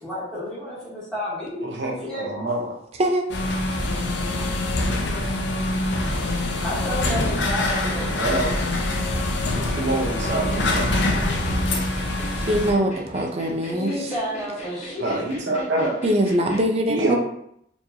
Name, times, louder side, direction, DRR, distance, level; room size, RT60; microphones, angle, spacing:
voice 1, 0.0-2.3 6.6-8.2 13.7-15.3, left 1 dB, ahead, -11 dB, 1.3 m, -31 dB
voice 2, 1.6-2.7 8.2-8.6 9.7-11.0 15.0-16.0 16.9-17.2, right 2 dB, 80° right, -1 dB, 1.0 m, -26 dB
sound 1, 3.3-12.7, left 1 dB, 80° left, 0.6 m, -24 dB
sound 2, 10.3-16.6, right 1 dB, 40° left, 1.1 m, -40 dB
voice 3, 12.4-14.1 16.0-17.2, right 1 dB, 35° right, 2 dB, 0.5 m, -22 dB
4.4 x 2.9 x 2.8 m, 0.72 s
head